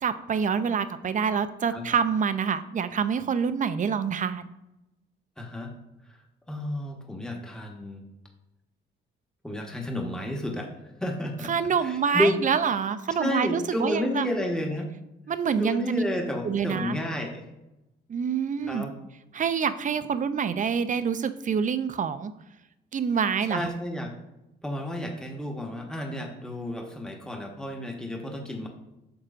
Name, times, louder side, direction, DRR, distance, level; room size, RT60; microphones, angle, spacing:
voice 1, 0.0-4.5 11.5-14.3 15.3-16.0 16.4-17.0 18.1-18.9 19.3-22.3 22.9-23.7, right 6 dB, 40° right, 12 dB, 0.5 m, -26 dB
voice 2, 5.4-5.7 6.1-6.2 6.5-8.0 9.4-10.7 11.0-11.5 11.8-12.4 13.2-14.9 15.6-17.4 18.7-18.9 23.5-24.1 24.6-28.7, left 1 dB, 5° left, 1 dB, 1.2 m, -31 dB
9.3 x 6.3 x 2.5 m, 0.93 s
cardioid pair, 90°, 20 cm